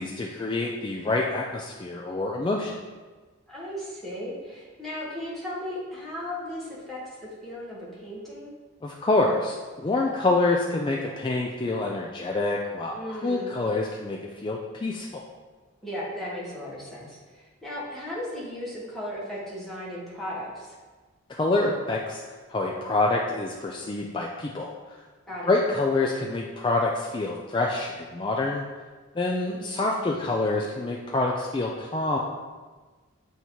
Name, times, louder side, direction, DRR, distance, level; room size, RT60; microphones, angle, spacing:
voice 1, 0.0-2.7 8.8-15.2 21.3-22.2 22.5-24.7 25.5-28.6 29.1-32.2, left 2 dB, 20° left, -1 dB, 0.3 m, -26 dB
voice 2, 3.5-8.5 12.9-13.5 15.8-20.8 25.3-25.5 29.5-29.8, left 1 dB, ahead, -8 dB, 1.3 m, -36 dB
7.5 x 2.7 x 4.5 m, 1.3 s
head